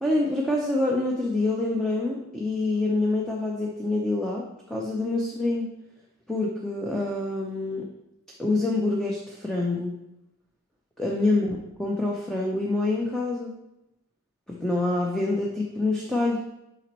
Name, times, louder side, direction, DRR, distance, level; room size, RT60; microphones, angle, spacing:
voice 1, 0.0-5.7 6.3-7.9 8.4-10.0 11.0-13.5 14.5-16.4, left 2 dB, ahead, -2 dB, 0.5 m, -26 dB
7.1 x 5.1 x 3.0 m, 0.88 s
head